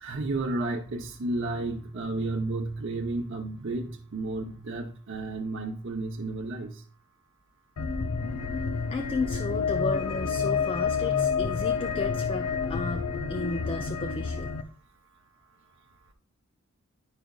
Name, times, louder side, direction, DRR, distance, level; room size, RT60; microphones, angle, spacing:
voice 1, 0.0-6.7, right 2 dB, 55° right, 1 dB, 0.7 m, -32 dB
sound 1, 7.8-14.6, left 5 dB, 85° left, 0.6 m, -29 dB
voice 2, 8.9-14.5, left 3 dB, 25° left, 7 dB, 0.3 m, -33 dB
10.5 x 5.0 x 2.3 m, 0.43 s
head